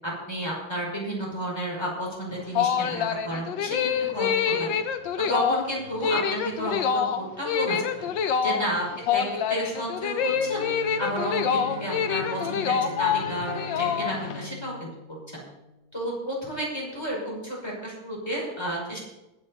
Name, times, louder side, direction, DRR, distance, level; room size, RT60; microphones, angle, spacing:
voice 1, 0.0-3.8 4.1-4.7 5.3-7.8 8.4-8.8 9.1-10.7 11.0-14.9 15.3-15.4 15.9-19.0, right 1 dB, 10° left, -3 dB, 5.7 m, -31 dB
sound 1, 2.3-14.4, left 7 dB, 70° left, 1.5 m, -26 dB
Bowed string instrument, 10.2-16.1, left 1 dB, 40° right, 3.4 m, -41 dB
21.5 x 8.9 x 4.2 m, 0.95 s
omnidirectional pair, 2.2 m